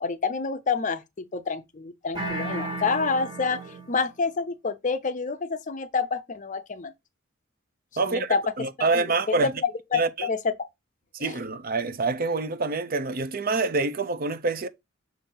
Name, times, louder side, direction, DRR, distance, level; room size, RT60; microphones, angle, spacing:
voice 1, 0.0-3.6 3.9-6.9 8.0-8.4 8.9-10.5 11.2-11.4, left 5 dB, 40° left, 0.6 m, -28 dB
sound 1, 2.1-4.1, right 2 dB, 25° right, 1.7 m, -34 dB
voice 2, 8.0-9.5 9.9-10.3 11.2-14.7, right 3 dB, 45° right, 0.6 m, -26 dB
7.0 x 2.6 x 5.4 m
head